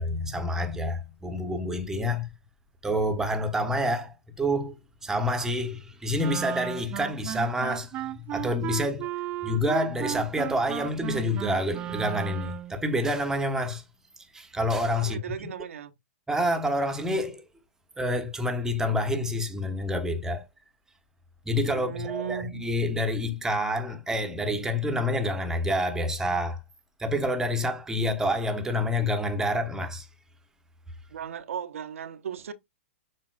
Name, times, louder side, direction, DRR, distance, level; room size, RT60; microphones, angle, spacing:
voice 1, 0.0-2.3 2.8-4.8 5.0-9.1 9.4-13.8 14.3-15.2 16.3-17.4 18.0-20.5 21.4-26.6 27.0-30.1, left 1 dB, 5° right, 1.2 m, -28 dB
Wind instrument woodwind instrument, 6.2-12.8, right 13 dB, 25° right, 0.4 m, -35 dB
voice 2, 14.9-16.0 21.7-22.7 31.1-32.5, right 8 dB, 75° right, 1.0 m, -36 dB
7.5 x 5.5 x 2.4 m
hypercardioid pair, 135°, 7 cm